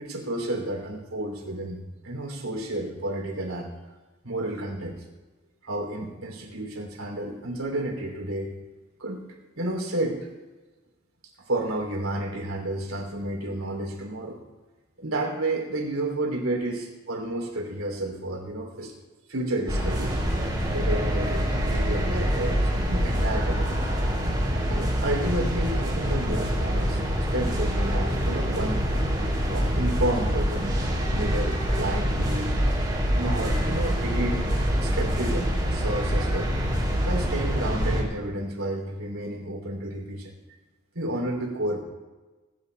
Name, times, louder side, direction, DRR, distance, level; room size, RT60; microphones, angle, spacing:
voice 1, 0.0-3.7 4.2-5.0 5.6-8.5 9.0-9.2 9.5-10.3 11.4-14.4 15.0-18.9 19.3-20.2 20.7-23.9 24.7-27.0 27.3-28.9 29.5-32.6 33.1-34.5 34.8-36.5 37.0-40.3 40.9-41.8, right 1 dB, 85° right, 1 dB, 3.1 m, -31 dB
sound 1, 19.7-38.0, equal, 20° right, 4.3 m, -25 dB
20.5 x 11.0 x 3.4 m, 1.2 s
head